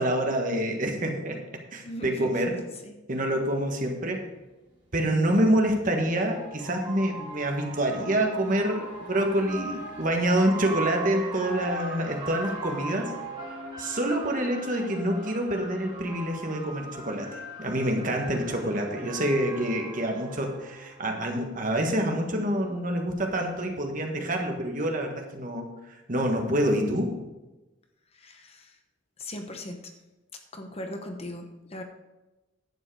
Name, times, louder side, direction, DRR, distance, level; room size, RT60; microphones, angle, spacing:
voice 1, 0.0-1.4 1.7-2.5 3.1-4.2 4.9-13.1 13.8-25.7 26.1-27.1, right 1 dB, 40° right, 3 dB, 1.6 m, -27 dB
voice 2, 1.8-2.3 2.8-2.9 28.1-28.8 29.2-29.8 30.5-31.8, left 1 dB, 30° left, 5 dB, 1.0 m, -38 dB
sound 1, 5.5-21.1, right 2 dB, 25° right, 3.7 m, -39 dB
11.0 x 7.7 x 4.8 m, 1.0 s
head